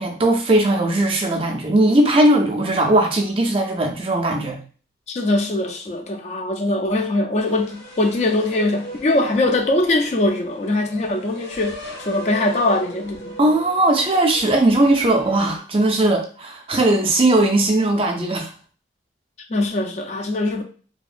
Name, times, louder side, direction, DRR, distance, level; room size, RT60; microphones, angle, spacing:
voice 1, 0.0-4.6 13.4-18.5, right 1 dB, 30° right, 0.4 m, -18 dB
voice 2, 5.1-13.4 19.5-20.6, left 2 dB, 40° left, 0.3 m, -22 dB
sound 1, 7.4-15.6, equal, 85° left, 0.8 m, -39 dB
2.7 x 2.3 x 2.4 m
head